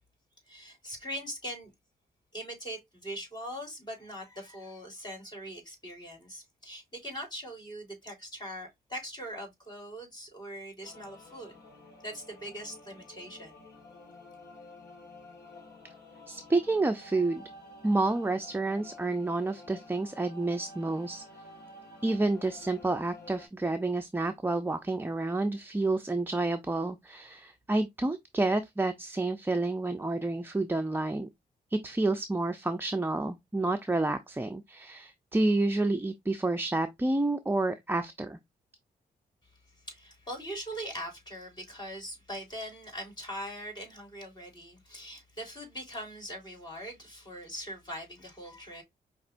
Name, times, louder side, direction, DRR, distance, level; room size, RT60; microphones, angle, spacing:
voice 1, 0.5-1.7 2.3-11.6 12.0-13.5 39.8-48.8, equal, 25° left, 3.3 m, -41 dB
sound 1, 10.8-23.5, left 1 dB, 80° left, 1.5 m, -51 dB
voice 2, 16.3-17.4 17.8-21.2 22.0-31.3 31.7-38.4, right 2 dB, 15° right, 0.5 m, -29 dB
5.2 x 2.9 x 2.5 m
cardioid pair, 65°, 17 cm